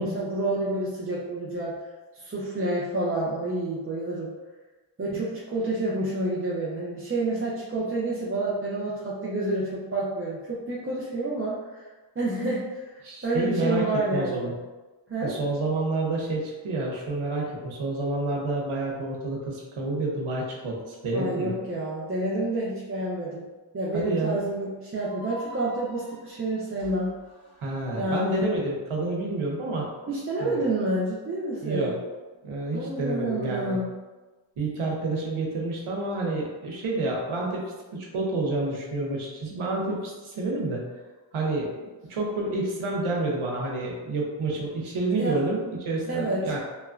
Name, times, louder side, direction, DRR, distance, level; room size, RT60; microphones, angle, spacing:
voice 1, 0.0-1.8 2.1-4.3 5.0-11.6 12.2-14.5 15.1-15.3 21.1-23.5 23.7-27.1 27.9-28.4 30.1-32.0 32.7-33.9 45.2-45.4 46.0-46.5, right 2 dB, 30° right, -6 dB, 0.5 m, -29 dB
voice 2, 13.0-14.5 15.2-21.5 23.9-24.4 27.6-29.9 30.4-30.6 31.6-31.9 32.4-33.8 34.6-37.6 37.9-40.8 41.3-41.8 42.1-46.6, right 2 dB, 90° right, -2 dB, 0.7 m, -29 dB
sound 1, 25.0-28.2, equal, 30° left, 1.4 m, -47 dB
2.8 x 2.2 x 2.4 m, 1.2 s
cardioid pair, 50°, 48 cm